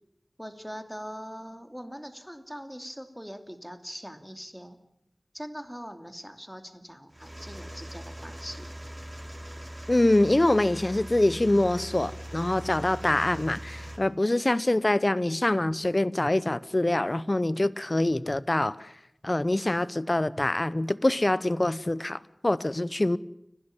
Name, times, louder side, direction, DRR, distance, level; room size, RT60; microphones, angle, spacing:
voice 1, 0.4-4.8 5.3-8.8, equal, ahead, 2.7 m, -42 dB
sound 1, 7.1-14.0, equal, 25° right, 4.1 m, -41 dB
voice 2, 9.9-18.9 19.2-23.2, left 1 dB, 40° left, 0.8 m, -25 dB
30.0 x 12.0 x 9.0 m
wide cardioid pair, 50°, 0 cm